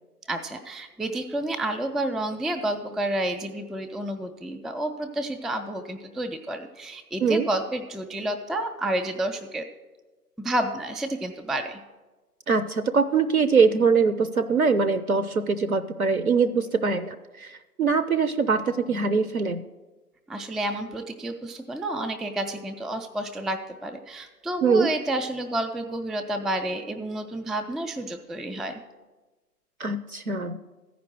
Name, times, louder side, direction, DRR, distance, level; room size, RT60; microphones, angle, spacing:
voice 1, 0.3-9.6 10.4-11.8 20.3-28.8, right 1 dB, ahead, 5 dB, 0.3 m, -30 dB
voice 2, 12.5-19.6 24.6-24.9 29.8-30.6, right 5 dB, 60° right, 10 dB, 0.5 m, -23 dB
14.0 x 5.1 x 6.2 m, 1.2 s
figure-of-eight pair, 150°, 48 cm